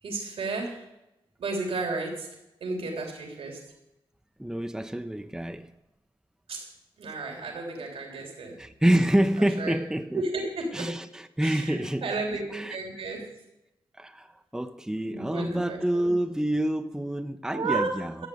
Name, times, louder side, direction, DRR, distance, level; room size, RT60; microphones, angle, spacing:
voice 1, 0.0-0.9 1.4-2.3 2.6-3.6 6.5-6.7 7.0-8.6 9.4-9.8 10.1-10.9 11.4-13.3 15.0-16.1 17.5-17.9, right 3 dB, 85° right, 3.3 m, -33 dB
voice 2, 4.4-5.7 8.6-10.2 10.7-12.0 12.5-12.8 14.0-18.3, right 1 dB, 5° right, 0.8 m, -27 dB
13.5 x 8.1 x 7.9 m
cardioid pair, 75°, 9 cm